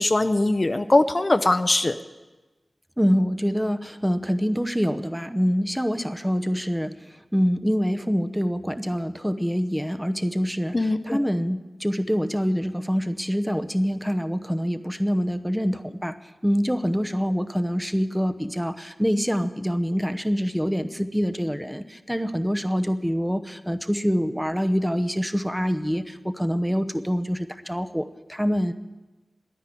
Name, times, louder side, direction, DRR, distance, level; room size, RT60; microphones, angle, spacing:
voice 1, 0.0-2.0 10.7-11.2, left 2 dB, 40° left, 10 dB, 0.6 m, -21 dB
voice 2, 3.0-16.2 16.4-28.7, equal, 5° right, 9 dB, 0.8 m, -25 dB
10.5 x 9.9 x 9.7 m, 1.1 s
cardioid pair, 50°, 0 cm